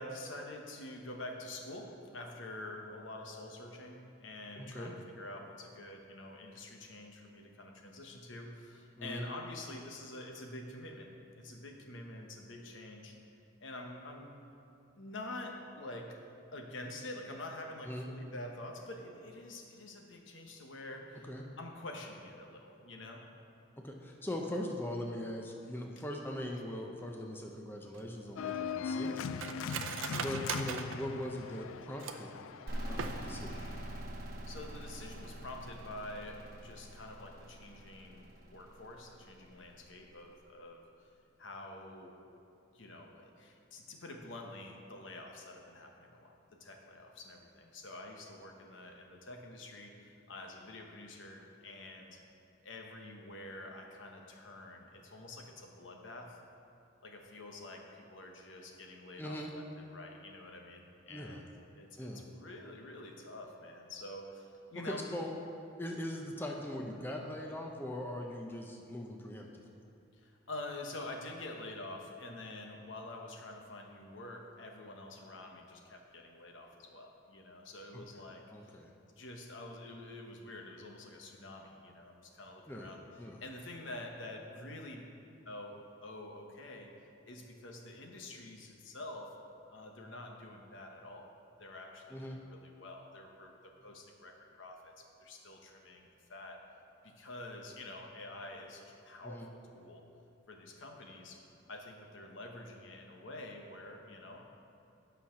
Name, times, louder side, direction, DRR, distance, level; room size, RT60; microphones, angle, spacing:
voice 1, 0.0-11.1 11.4-13.2 13.6-14.3 15.0-16.2 16.5-21.3 21.6-23.2 25.9-26.0 29.0-30.7 34.5-40.8 41.4-42.2 42.7-52.2 52.6-56.4 57.0-61.4 61.7-65.0 70.2-78.8 79.1-83.0 83.3-85.1 85.4-86.9 87.3-89.3 89.7-91.3 91.6-96.6 97.0-100.0 100.5-101.4 101.7-104.4, left 2 dB, 70° left, 2 dB, 1.0 m, -47 dB
voice 2, 4.6-4.9 9.0-9.3 17.9-18.1 21.2-21.4 23.8-32.3 32.8-33.6 59.2-59.5 61.1-61.4 62.0-62.2 64.8-65.4 65.8-69.5 77.9-78.0 78.5-78.9 82.7-82.9 83.2-83.4 92.1-92.4 99.2-99.5, left 1 dB, 10° left, 1 dB, 0.5 m, -41 dB
Cutlery silverware, 27.9-32.4 32.9-33.6 33.9-34.0 34.3-34.7 35.0-35.2, right 6 dB, 80° right, 0.5 m, -41 dB
Organ, 28.4-34.0, left 6 dB, 90° left, 0.3 m, -40 dB
sound 1, 32.7-40.2, right 1 dB, 50° right, 1.0 m, -45 dB
9.0 x 5.7 x 5.7 m, 2.5 s
head